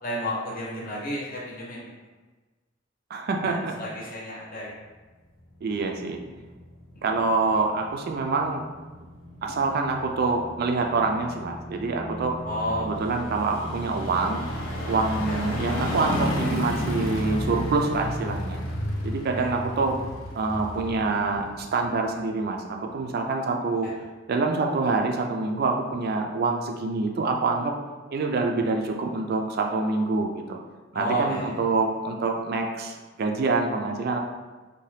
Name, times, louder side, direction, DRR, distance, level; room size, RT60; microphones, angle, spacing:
voice 1, 0.0-1.9 3.4-4.7 7.1-7.2 12.4-12.9 15.3-15.4 19.4-19.5 30.9-31.5, equal, 45° left, -4 dB, 0.8 m, -31 dB
voice 2, 3.1-3.8 5.6-6.2 7.0-8.6 9.4-12.4 12.8-14.5 14.9-18.6 19.0-20.0 20.3-23.9 24.3-27.7 28.1-30.6 30.9-34.2, right 3 dB, 55° right, 2 dB, 0.4 m, -26 dB
sound 1, 5.5-22.1 22.4-22.5, equal, 75° left, 0.5 m, -33 dB
2.7 x 2.2 x 3.2 m, 1.3 s
head